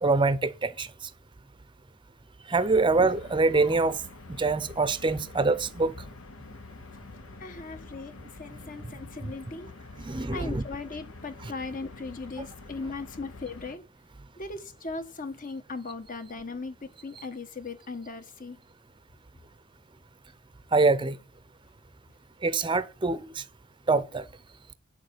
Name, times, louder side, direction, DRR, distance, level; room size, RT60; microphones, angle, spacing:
voice 1, 0.0-0.9 2.5-4.0 4.4-5.9 10.0-10.6 11.4-11.5 20.7-21.2 22.4-23.4 23.9-24.2, right 3 dB, 25° right, 0.7 m, -24 dB
sound 1, 2.5-13.8, left 3 dB, 70° left, 1.0 m, -47 dB
voice 2, 7.4-9.7 10.3-13.8 14.4-18.6, left 3 dB, 40° left, 1.3 m, -38 dB
8.7 x 6.6 x 7.8 m
head